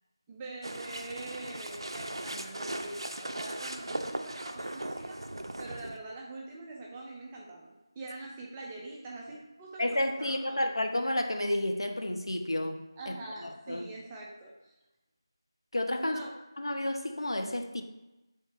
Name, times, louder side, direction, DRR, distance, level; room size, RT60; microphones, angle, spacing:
voice 1, 0.3-5.2 5.6-10.7 13.0-14.7 16.0-16.3, right 2 dB, 10° right, -3 dB, 0.3 m, -44 dB
sound 1, 0.6-6.0, right 1 dB, 80° right, 0.4 m, -38 dB
voice 2, 9.8-13.1 13.4-13.9 15.7-16.2 16.6-17.8, left 1 dB, 75° left, 5 dB, 0.5 m, -31 dB
3.5 x 2.8 x 4.3 m, 1.0 s
figure-of-eight pair, 170°, 3 cm